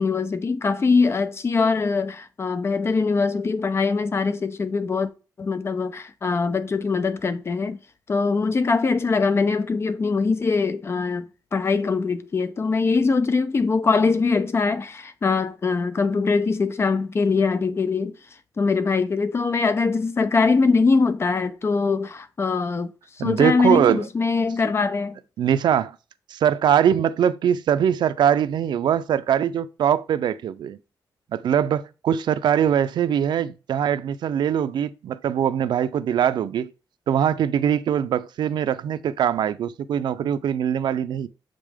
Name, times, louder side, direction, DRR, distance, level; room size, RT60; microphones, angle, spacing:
voice 1, 0.0-5.1 5.4-7.8 8.1-18.2 18.6-22.9 23.2-25.2, left 4 dB, 35° left, 0.7 m, -22 dB
voice 2, 23.2-24.0 25.4-25.9 26.3-30.8 31.3-36.7 37.1-41.3, right 9 dB, 80° right, 0.5 m, -22 dB
7.3 x 5.2 x 3.6 m
wide cardioid pair, 135°, 8 cm